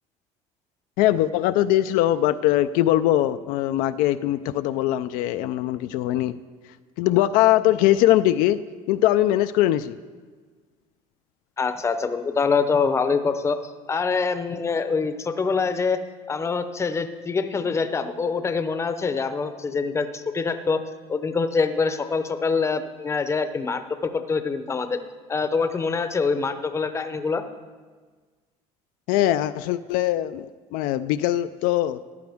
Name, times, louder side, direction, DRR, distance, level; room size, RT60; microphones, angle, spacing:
voice 1, 1.0-6.3 7.0-8.6 8.9-9.9 29.1-32.0, left 13 dB, 75° left, 11 dB, 0.4 m, -21 dB
voice 2, 11.6-16.0 16.3-20.8 21.1-25.0 25.3-27.4, left 4 dB, 20° left, 9 dB, 0.7 m, -25 dB
14.5 x 10.5 x 3.5 m, 1.4 s
cardioid pair, 130°, 14 cm